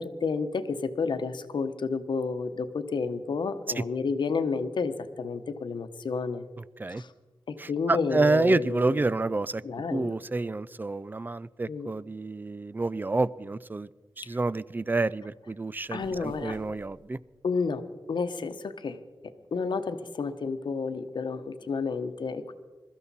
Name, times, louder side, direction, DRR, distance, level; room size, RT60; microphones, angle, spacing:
voice 1, 0.0-6.5 6.9-7.1 7.5-9.0 9.6-10.1 11.7-11.9 15.9-16.6 17.4-22.5, left 4 dB, 70° left, 10 dB, 1.0 m, -31 dB
voice 2, 6.6-7.0 7.6-9.6 9.9-13.9 14.2-17.2, right 3 dB, 25° right, 19 dB, 0.4 m, -28 dB
sound 1, 15.6-17.2, right 1 dB, 90° right, 2.8 m, -50 dB
22.5 x 13.5 x 4.2 m, 1.3 s
wide cardioid pair, 90°, 8 cm